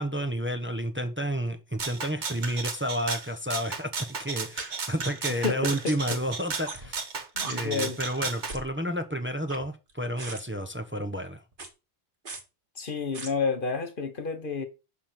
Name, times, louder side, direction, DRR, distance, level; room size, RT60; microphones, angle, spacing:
voice 1, 0.0-3.9 4.2-7.0 7.4-11.4, equal, 10° right, 1.0 m, -31 dB
Rattle (instrument), 1.8-8.5, right 5 dB, 85° right, 1.7 m, -34 dB
sound 1, 3.7-3.8 4.6-4.7 5.2-5.3 5.9-6.0 6.7-7.0 7.4-7.5 8.5-8.7 9.3-9.9 10.2-10.4 11.5-11.7 12.3-12.4 13.1-13.3, right 3 dB, 50° right, 1.8 m, -38 dB
voice 2, 5.4-6.2 7.4-8.0 12.8-14.7, left 5 dB, 50° left, 1.2 m, -30 dB
11.0 x 3.8 x 6.0 m
omnidirectional pair, 1.1 m